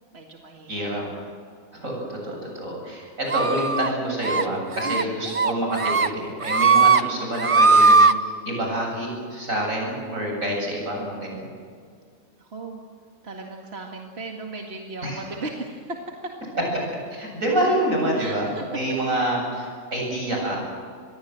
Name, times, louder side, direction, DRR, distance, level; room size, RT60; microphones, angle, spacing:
voice 1, 0.1-0.8 1.1-1.3 2.2-2.5 4.8-5.1 12.4-12.8 13.2-16.3 18.2-18.6 19.1-19.3, right 3 dB, 50° right, 0 dB, 2.3 m, -36 dB
voice 2, 0.7-1.0 1.7-11.5 15.0-15.2 17.1-20.6, right 1 dB, 85° right, -1 dB, 8.6 m, -27 dB
sound 1, 3.3-3.9 4.2-4.4 4.8-5.0 5.3-6.1 6.4-7.0 7.3-8.1, right 4 dB, 30° right, 0.6 m, -18 dB
26.0 x 21.5 x 7.8 m, 2.1 s
omnidirectional pair, 1.4 m